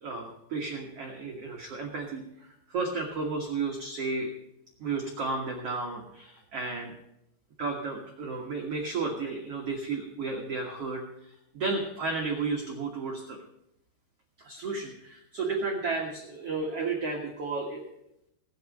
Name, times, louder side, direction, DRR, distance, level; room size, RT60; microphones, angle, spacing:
voice 1, 0.0-4.3 4.8-6.9 7.6-13.4 14.4-17.8, right 3 dB, 85° right, 0 dB, 1.3 m, -33 dB
16.0 x 9.2 x 5.3 m, 0.82 s
omnidirectional pair, 5.4 m